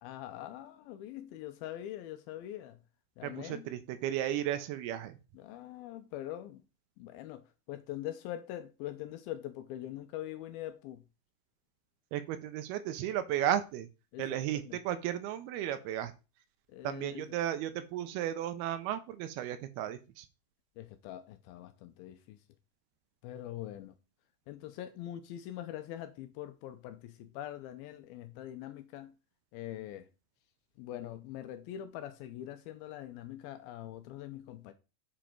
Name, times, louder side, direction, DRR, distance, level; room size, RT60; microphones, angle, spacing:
voice 1, 0.0-2.8 3.2-3.7 5.3-6.6 7.0-11.0 14.1-14.8 16.7-17.4 20.8-22.4 23.2-24.0 24.5-29.1 29.5-30.1 30.8-34.7, left 12 dB, 80° left, 2.3 m, -43 dB
voice 2, 3.2-5.2 12.1-13.9 14.2-16.1 16.8-20.3, right 11 dB, 80° right, 2.5 m, -34 dB
7.1 x 5.0 x 4.4 m
omnidirectional pair, 4.6 m